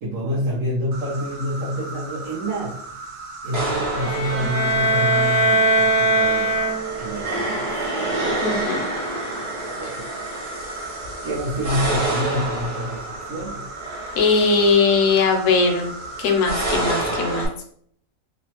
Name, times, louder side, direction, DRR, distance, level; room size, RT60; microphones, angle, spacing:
voice 1, 0.0-2.8 3.4-6.7 7.0-7.9 9.8-10.1 11.2-13.7, equal, 70° right, -6 dB, 1.1 m, -27 dB
Insect, 0.9-17.5, right 2 dB, 90° right, 1.1 m, -37 dB
sound 1, 3.5-17.5, right 1 dB, 55° right, 0.9 m, -29 dB
sound 2, 3.9-7.2, right 1 dB, 45° left, 0.4 m, -20 dB
voice 2, 8.4-8.8 14.2-15.9 16.2-17.5, left 4 dB, 70° left, 3 dB, 0.9 m, -19 dB
3.0 x 2.0 x 2.8 m, 0.63 s
omnidirectional pair, 1.5 m